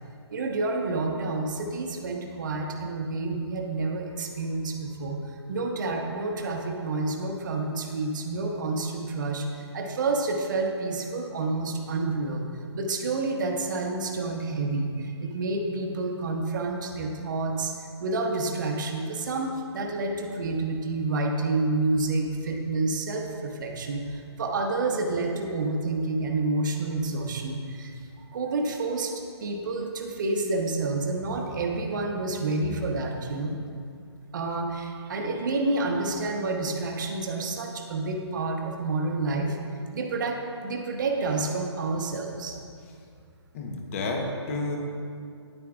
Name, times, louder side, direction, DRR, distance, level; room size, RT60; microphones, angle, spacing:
voice 1, 0.3-12.4 12.7-17.7 18.0-29.1 29.4-33.6 34.3-39.6 39.9-42.6, right 3 dB, 45° right, 2 dB, 0.9 m, -29 dB
voice 2, 43.5-44.8, left 2 dB, 30° left, 2 dB, 0.9 m, -30 dB
9.8 x 8.7 x 2.4 m, 2.3 s
hypercardioid pair, 160°, 15 cm